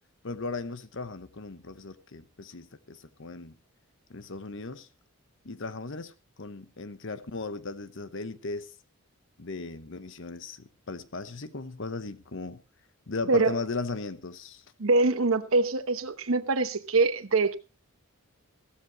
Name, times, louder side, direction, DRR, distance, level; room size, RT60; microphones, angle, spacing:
voice 1, 0.2-3.5 4.1-4.9 5.4-6.1 6.4-8.7 9.4-12.6 13.1-14.6, left 3 dB, 60° left, 1.0 m, -37 dB
voice 2, 14.8-17.5, right 3 dB, 65° right, 1.0 m, -24 dB
15.5 x 12.5 x 3.0 m
head